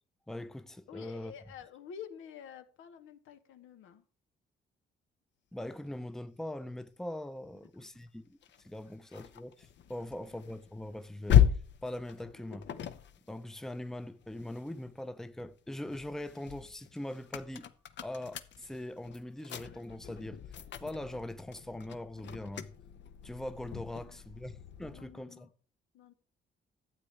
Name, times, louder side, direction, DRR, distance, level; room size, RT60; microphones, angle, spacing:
voice 1, 0.3-1.3 5.5-8.4 8.6-11.4 11.8-12.7 13.3-17.7 18.0-20.4 20.8-22.7 23.2-25.5, left 1 dB, ahead, 0.6 m, -41 dB
voice 2, 0.9-4.0 7.8-7.9 24.0-24.6 24.9-25.5 25.9-26.1, left 8 dB, 85° left, 1.0 m, -49 dB
sound 1, 8.4-15.0 15.4-25.2, left 9 dB, 65° left, 0.8 m, -34 dB
12.0 x 8.2 x 3.3 m
cardioid pair, 90°, 20 cm